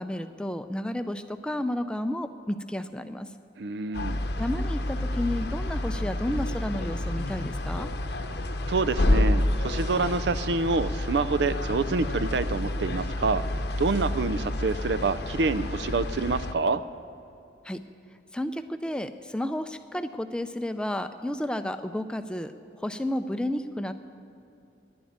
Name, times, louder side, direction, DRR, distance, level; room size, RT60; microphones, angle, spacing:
voice 1, 0.0-3.3 4.4-7.9 17.6-17.8 18.3-23.9, left 1 dB, 5° left, 9 dB, 0.4 m, -32 dB
voice 2, 3.6-4.2 8.7-13.4 13.8-16.8, right 3 dB, 75° right, 14 dB, 0.5 m, -27 dB
sound 1, 3.8-10.9, equal, 40° right, 4.4 m, -53 dB
sound 2, 3.9-16.5, left 1 dB, 70° left, 0.8 m, -29 dB
11.5 x 10.5 x 9.4 m, 2.6 s
head